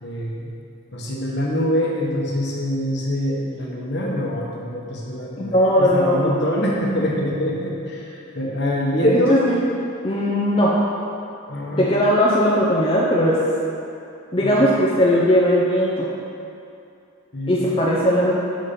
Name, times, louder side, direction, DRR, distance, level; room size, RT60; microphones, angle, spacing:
voice 1, 0.0-0.5 0.9-9.3 11.5-11.9 14.4-14.7 17.3-17.7, equal, 50° left, -3 dB, 1.0 m, -25 dB
voice 2, 5.4-6.4 9.0-9.6 10.0-10.7 11.8-13.4 14.3-16.1 17.5-18.3, equal, 25° left, -6 dB, 0.5 m, -18 dB
6.3 x 4.2 x 5.0 m, 2.6 s
head